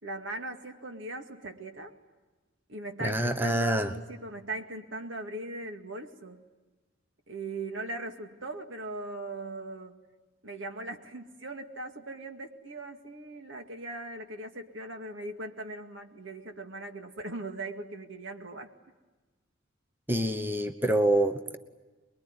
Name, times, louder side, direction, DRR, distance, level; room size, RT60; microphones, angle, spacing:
voice 1, 0.0-2.0 2.7-6.4 7.3-10.0 10.4-18.7, right 2 dB, 75° right, 5 dB, 2.1 m, -39 dB
voice 2, 3.0-3.9 20.1-21.6, right 1 dB, 10° right, 8 dB, 1.0 m, -26 dB
24.0 x 22.5 x 9.7 m, 1.2 s
head